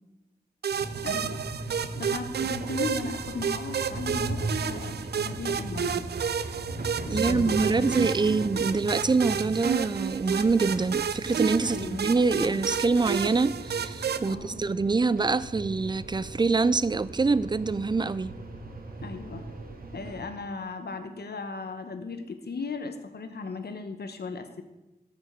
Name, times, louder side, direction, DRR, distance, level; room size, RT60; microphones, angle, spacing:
sound 1, 0.6-14.3, right 7 dB, 90° right, 0.4 m, -31 dB
sound 2, 0.7-20.2, right 2 dB, 65° right, 1.5 m, -38 dB
voice 1, 1.0-1.4 1.9-6.1 7.1-8.7 11.6-12.0 12.4-12.7 14.3-14.6 19.0-19.5 19.9-24.6, left 4 dB, 80° left, 1.1 m, -37 dB
voice 2, 7.1-18.4, right 4 dB, 25° right, 0.4 m, -25 dB
13.0 x 5.2 x 6.6 m
wide cardioid pair, 65°, 16 cm